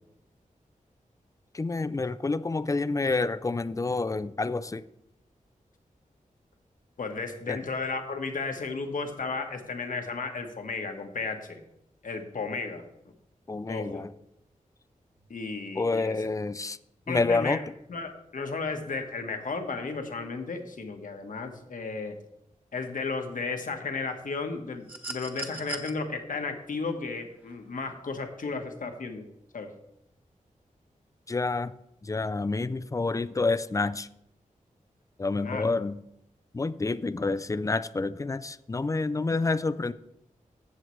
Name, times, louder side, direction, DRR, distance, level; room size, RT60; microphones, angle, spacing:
voice 1, 1.5-4.8 7.5-7.6 13.5-14.1 15.8-16.8 17.1-17.6 31.3-31.8 32.0-34.1 35.2-36.0 36.5-39.9, left 3 dB, 25° left, 0.4 m, -28 dB
voice 2, 7.0-11.6 12.0-12.8 13.7-14.0 15.3-16.2 17.1-17.6 17.9-22.2 22.7-29.3 29.5-29.7 35.4-35.7, left 4 dB, 70° left, 1.3 m, -34 dB
sound 1, 24.9-25.9 27.4-27.5, right 3 dB, 10° right, 1.4 m, -38 dB
15.5 x 7.4 x 3.2 m
wide cardioid pair, 100°, 14 cm